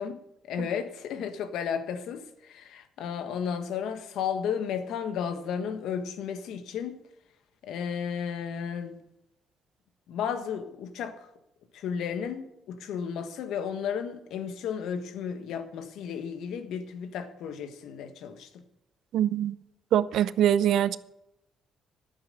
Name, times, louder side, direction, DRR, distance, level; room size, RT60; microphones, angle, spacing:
voice 1, 0.0-7.0 7.6-9.0 10.1-11.3 11.7-18.6, left 7 dB, 85° left, 1.4 m, -33 dB
voice 2, 19.1-19.6 19.9-21.0, right 10 dB, 75° right, 0.6 m, -23 dB
11.5 x 9.0 x 6.7 m
cardioid pair, 90°, 0 cm